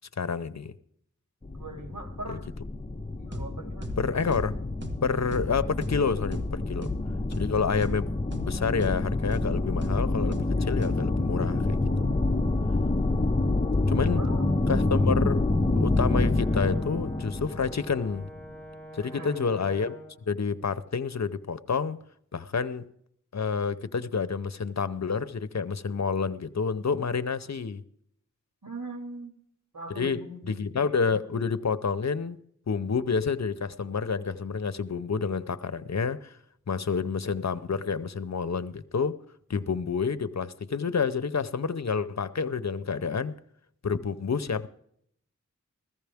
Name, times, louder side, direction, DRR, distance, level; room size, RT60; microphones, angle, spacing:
voice 1, 0.2-0.7 2.3-2.4 4.0-4.5 5.0-6.9 7.4-8.1 8.5-12.2 13.9-14.3 14.7-18.3 18.9-20.0 20.3-22.0 22.3-22.8 23.3-27.8 29.9-30.2 30.5-32.4 32.7-36.4 36.7-39.2 39.5-43.4 43.8-44.7, left 5 dB, 60° left, 0.7 m, -29 dB
sound 1, 1.4-18.4, left 2 dB, 20° left, 0.8 m, -27 dB
voice 2, 1.5-2.4 3.2-3.9 7.1-7.3 10.5-10.6 13.2-13.4 14.0-14.5 19.0-19.5 28.6-29.3 29.7-30.6, right 2 dB, 85° right, 2.2 m, -41 dB
sound 2, 3.3-3.5 3.8-4.0 4.3-4.5 4.8-5.0 5.3-5.5 5.8-6.0 6.3-6.5 6.8-7.0 7.3-7.5 7.8-8.0 8.3-8.5 8.8-9.0 9.3-9.5 9.8-10.0 10.3-10.5 10.8-11.0, equal, 35° right, 1.8 m, -35 dB
Brass instrument, 15.8-20.2, equal, 5° left, 7.1 m, -45 dB
15.5 x 14.0 x 3.5 m
wide cardioid pair, 50°, 30 cm